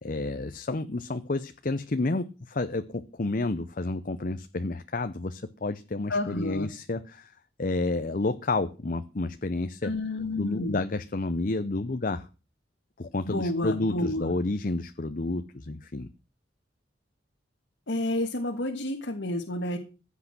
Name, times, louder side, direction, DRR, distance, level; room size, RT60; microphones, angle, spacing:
voice 1, 0.0-7.3 7.6-9.9 10.4-12.3 13.0-16.1, left 2 dB, 50° left, 9 dB, 0.7 m, -30 dB
voice 2, 6.1-6.7 9.8-10.8 13.3-14.3 17.9-19.8, left 1 dB, 85° left, 1 dB, 1.6 m, -30 dB
15.5 x 8.4 x 6.0 m, 0.34 s
head